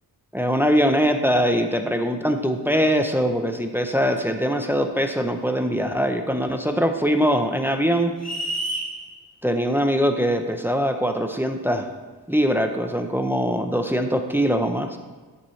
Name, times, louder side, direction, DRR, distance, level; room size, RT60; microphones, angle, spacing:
voice 1, 0.3-8.1 9.4-11.9 12.3-15.0, equal, 5° right, 6 dB, 0.6 m, -22 dB
sound 1, 8.2-8.9, right 1 dB, 40° left, 1.8 m, -28 dB
13.5 x 7.1 x 3.2 m, 1.4 s
wide cardioid pair, 115°, 38 cm